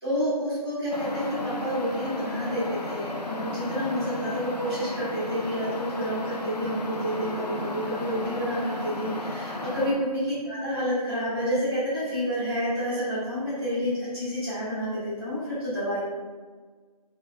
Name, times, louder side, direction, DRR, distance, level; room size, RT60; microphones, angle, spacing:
voice 1, 0.0-16.0, equal, 5° left, -18 dB, 0.9 m, -29 dB
sound 1, 0.9-9.9, left 2 dB, 90° left, 0.7 m, -34 dB
4.4 x 3.4 x 2.6 m, 1.5 s
figure-of-eight pair, 175°, 20 cm